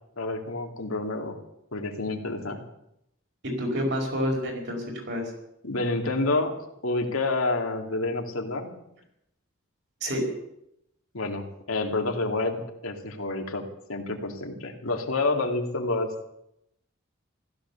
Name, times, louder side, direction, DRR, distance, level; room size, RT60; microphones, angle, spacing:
voice 1, 0.2-1.4 1.7-2.6 5.6-6.6 6.8-8.7 11.1-16.3, left 2 dB, 85° left, 3 dB, 2.4 m, -29 dB
voice 2, 3.4-5.2 10.0-10.2, equal, 55° right, 1 dB, 5.1 m, -28 dB
15.5 x 13.0 x 7.0 m, 0.80 s
head